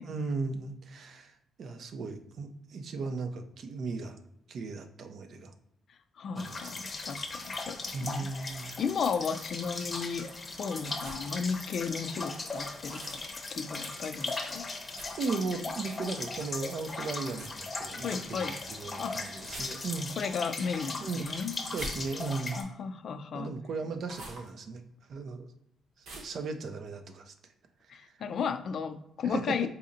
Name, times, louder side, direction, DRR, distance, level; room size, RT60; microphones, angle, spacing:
voice 1, 0.0-1.3 1.6-4.2 4.5-5.5 6.3-7.1 7.9-8.7 15.2-20.1 21.0-21.3 21.6-22.6 23.3-24.8 25.1-25.5 26.2-27.3 29.2-29.7, right 4 dB, 60° right, 7 dB, 0.5 m, -36 dB
voice 2, 6.2-10.3 10.6-13.2 13.5-14.6 18.0-18.5 19.0-19.2 20.2-21.5 22.6-23.5 27.9-29.7, left 6 dB, 60° left, 9 dB, 0.4 m, -34 dB
sound 1, 6.4-22.6, left 3 dB, 30° left, 0.7 m, -38 dB
sound 2, 10.9-11.5 12.8-13.3 14.9-15.4 17.3-17.6 19.4-20.1 21.6-22.5 24.0-24.5 26.0-26.4, right 1 dB, 80° right, 1.0 m, -45 dB
4.1 x 2.7 x 2.5 m, 0.79 s
cardioid pair, 90°, 0 cm